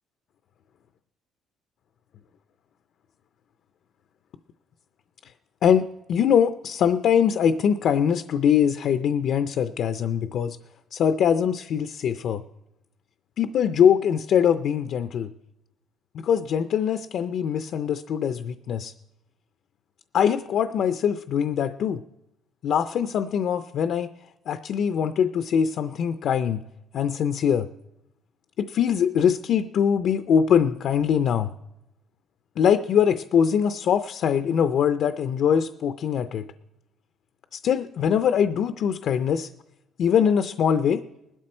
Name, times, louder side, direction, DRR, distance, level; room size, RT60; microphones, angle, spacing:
voice 1, 5.6-10.6 10.9-12.4 13.4-15.3 16.1-18.9 20.1-22.0 22.6-24.1 24.5-26.6 26.9-27.7 28.6-31.5 32.6-36.4 37.5-39.5 40.0-41.0, left 8 dB, 50° left, 11 dB, 0.4 m, -22 dB
20.0 x 12.0 x 4.3 m, 0.89 s
cardioid pair, 175°, 0 cm